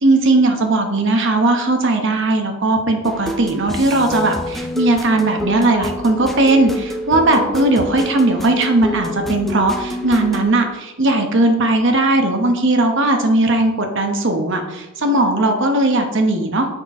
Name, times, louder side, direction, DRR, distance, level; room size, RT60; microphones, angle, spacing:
voice 1, 0.0-16.7, right 2 dB, 55° right, 4 dB, 0.9 m, -17 dB
sound 1, 3.0-10.4, equal, ahead, 0.5 m, -27 dB
6.4 x 4.2 x 4.8 m, 1.0 s
head